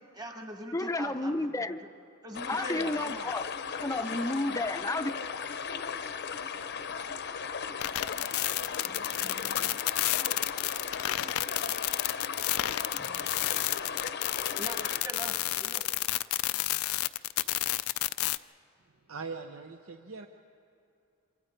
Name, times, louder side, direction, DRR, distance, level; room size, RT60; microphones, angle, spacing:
voice 1, 0.1-1.5 2.2-3.3 7.4-9.8 12.9-13.7 14.5-15.8, right 1 dB, 20° right, 3 dB, 1.6 m, -44 dB
voice 2, 0.7-1.8 2.5-5.1, left 2 dB, 15° left, 9 dB, 0.6 m, -31 dB
sound 1, 2.3-15.0, left 6 dB, 55° left, 0.7 m, -37 dB
Trumpet, 3.9-8.3, right 2 dB, 45° right, 2.5 m, -57 dB
sound 2, 7.8-18.4, left 16 dB, 90° left, 0.4 m, -30 dB
voice 3, 19.1-20.3, right 4 dB, 70° right, 5 dB, 0.8 m, -41 dB
27.0 x 24.0 x 4.5 m, 2.6 s
head